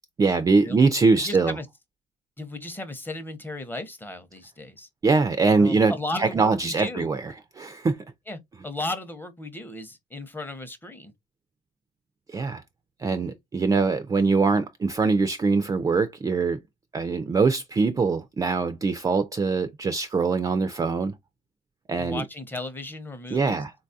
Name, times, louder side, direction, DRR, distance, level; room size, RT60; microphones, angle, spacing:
voice 1, 0.2-1.6 5.0-5.9 6.2-8.0 12.3-12.6 13.0-16.6 16.9-21.1 21.9-22.2 23.3-23.7, right 4 dB, 20° right, 0.3 m, -23 dB
voice 2, 1.2-1.7 2.4-4.9 5.6-7.1 8.3-11.1 22.0-23.6, left 2 dB, 10° left, 0.7 m, -35 dB
3.9 x 2.3 x 2.6 m
cardioid pair, 110°, 17 cm